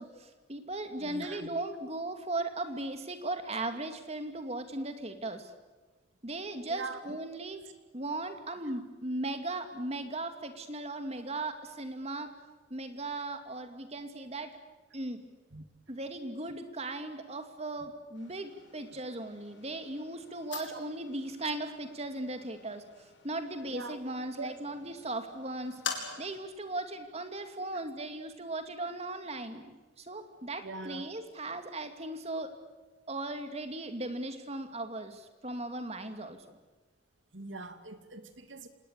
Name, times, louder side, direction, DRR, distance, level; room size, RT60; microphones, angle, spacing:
voice 1, 0.0-5.5 6.2-7.6 7.9-12.3 12.7-14.5 14.9-15.2 15.9-22.8 23.2-25.8 26.2-32.5 33.1-36.6, right 2 dB, 35° right, 7 dB, 2.6 m, -37 dB
voice 2, 1.0-1.5 6.7-7.2 15.5-15.6 20.7-20.8 23.7-24.0 24.4-24.6 30.6-31.1 37.3-38.7, right 3 dB, 85° right, 8 dB, 2.5 m, -42 dB
sound 1, 18.1-26.4, left 6 dB, 75° left, 4.7 m, -45 dB
26.5 x 20.0 x 8.3 m, 1.2 s
head